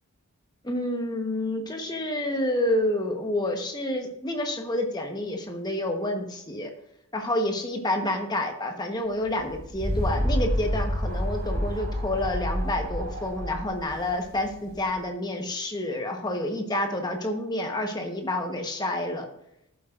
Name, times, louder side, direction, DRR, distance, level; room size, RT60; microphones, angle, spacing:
voice 1, 0.6-6.7 7.1-19.3, left 1 dB, 20° left, 3 dB, 1.1 m, -29 dB
sound 1, 9.3-14.9, equal, 35° right, 3.6 m, -29 dB
13.5 x 7.7 x 2.5 m, 0.80 s
head